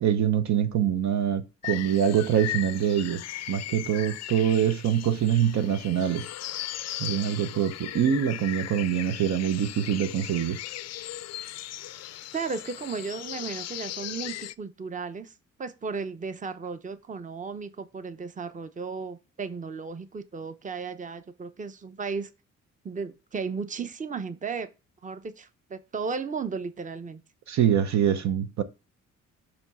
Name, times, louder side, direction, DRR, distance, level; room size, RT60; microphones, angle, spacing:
voice 1, 0.0-6.3 7.0-10.6 27.5-28.6, right 9 dB, 65° right, 0.9 m, -25 dB
sound 1, 1.6-14.5, left 13 dB, 60° left, 0.5 m, -37 dB
voice 2, 12.3-15.3 15.6-22.3 22.8-24.7 25.0-27.2, right 5 dB, 25° right, 0.8 m, -35 dB
7.1 x 3.1 x 5.5 m
cardioid pair, 90°, 30 cm